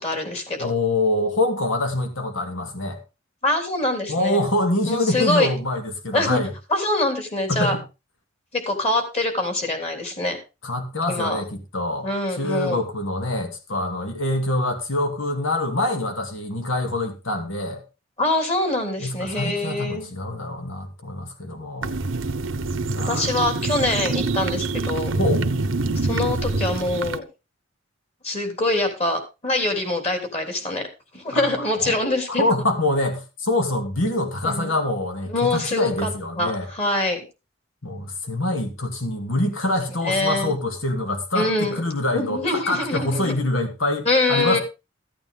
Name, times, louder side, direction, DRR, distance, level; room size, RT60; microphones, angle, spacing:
voice 1, 0.0-0.7 3.4-4.4 4.9-5.5 6.1-6.4 6.7-7.8 8.5-10.4 11.1-11.4 12.0-12.8 18.2-20.1 23.1-25.1 26.0-27.2 28.2-30.8 31.1-32.6 34.4-34.7 35.3-36.1 36.4-37.2 39.6-39.7 40.0-40.5 41.3-41.7 42.1-43.3 44.0-44.6, left 2 dB, 35° left, 3.4 m, -24 dB
voice 2, 0.6-3.0 4.1-6.5 7.5-7.8 10.6-17.8 19.0-21.9 22.9-23.3 25.1-25.4 31.3-36.7 37.8-44.6, left 1 dB, 80° left, 2.4 m, -25 dB
sound 1, 21.8-27.2, right 3 dB, 75° right, 0.9 m, -25 dB
14.5 x 8.9 x 3.7 m
head